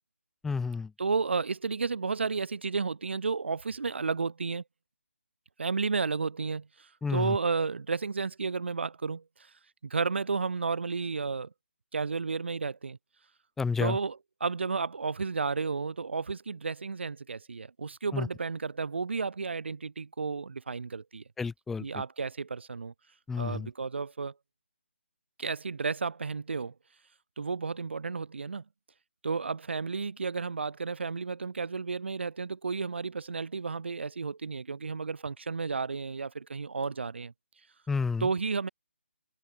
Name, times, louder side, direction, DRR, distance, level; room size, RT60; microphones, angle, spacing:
voice 1, 0.4-0.9 7.0-7.4 13.6-14.0 18.1-18.3 21.4-21.9 23.3-23.7 37.9-38.3, left 4 dB, 5° left, 0.5 m, -30 dB
voice 2, 1.0-4.6 5.6-6.7 7.1-9.2 9.8-11.5 11.9-13.0 13.8-21.2 21.8-22.9 23.4-24.3 25.4-26.7 27.4-28.6 29.2-37.3 38.2-38.7, right 4 dB, 55° right, 2.8 m, -32 dB
figure-of-eight pair, 150°, 7 cm